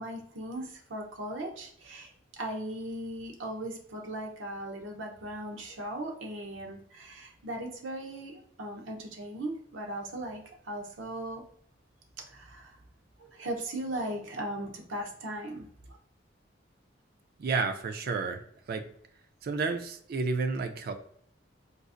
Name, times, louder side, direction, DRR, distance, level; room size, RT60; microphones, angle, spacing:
voice 1, 0.0-11.4 12.3-12.8 13.2-15.7, right 1 dB, 90° right, 1 dB, 0.7 m, -38 dB
voice 2, 17.4-18.4 18.7-18.9 19.4-20.9, right 4 dB, 50° right, 6 dB, 0.4 m, -31 dB
3.9 x 2.4 x 2.4 m, 0.65 s
head